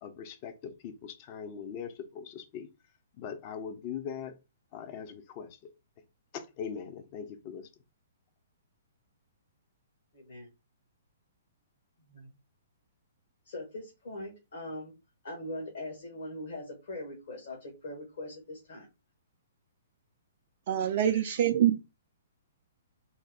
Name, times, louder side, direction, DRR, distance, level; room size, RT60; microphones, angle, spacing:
voice 1, 0.0-2.7 3.2-4.4 4.7-5.7 6.3-7.7, left 7 dB, 40° left, 0.7 m, -41 dB
voice 2, 10.1-10.5 12.1-12.3 13.4-14.9 15.2-18.9, left 1 dB, 65° left, 1.6 m, -41 dB
voice 3, 20.7-21.9, right 10 dB, 50° right, 0.4 m, -25 dB
4.0 x 2.3 x 4.2 m
hypercardioid pair, 125°, 0 cm